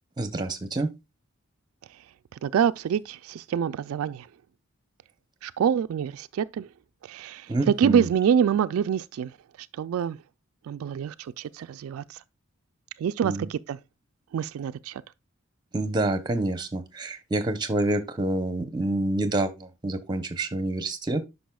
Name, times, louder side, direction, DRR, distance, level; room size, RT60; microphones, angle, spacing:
voice 1, 0.2-0.9 7.5-8.1 13.2-13.5 15.7-21.2, right 2 dB, 20° right, 0.7 m, -27 dB
voice 2, 2.4-4.3 5.4-6.7 7.1-9.3 9.8-10.2 10.7-12.2 13.0-13.8 14.3-15.0, right 8 dB, 80° right, 0.3 m, -26 dB
10.0 x 5.5 x 2.3 m
head